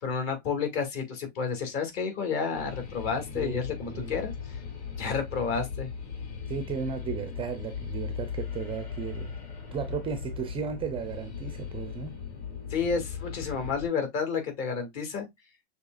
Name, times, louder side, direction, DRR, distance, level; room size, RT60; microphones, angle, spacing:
voice 1, 0.0-4.6 5.0-5.9 12.7-15.3, left 5 dB, 40° left, 2.2 m, -30 dB
sound 1, 2.5-13.9, left 7 dB, 75° left, 2.9 m, -38 dB
voice 2, 6.5-9.4 9.7-12.1, right 7 dB, 15° right, 0.5 m, -35 dB
6.6 x 3.3 x 2.3 m
hypercardioid pair, 135°, 33 cm